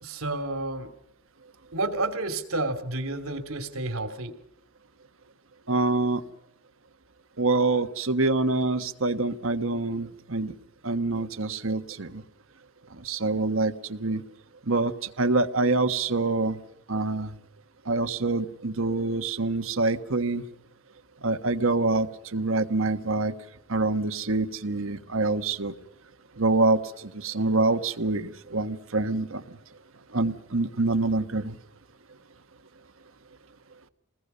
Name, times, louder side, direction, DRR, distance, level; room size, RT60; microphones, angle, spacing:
voice 1, 0.0-0.9 1.7-4.4, right 2 dB, 85° right, 8 dB, 2.8 m, -30 dB
voice 2, 5.7-6.2 7.4-10.5 10.8-12.2 13.0-14.2 14.7-14.9 15.2-16.6 16.9-17.3 17.9-20.4 21.2-23.3 23.7-25.7 26.4-29.4 30.1-31.6, right 3 dB, 70° right, 9 dB, 1.4 m, -26 dB
29.0 x 20.5 x 5.6 m, 0.81 s
head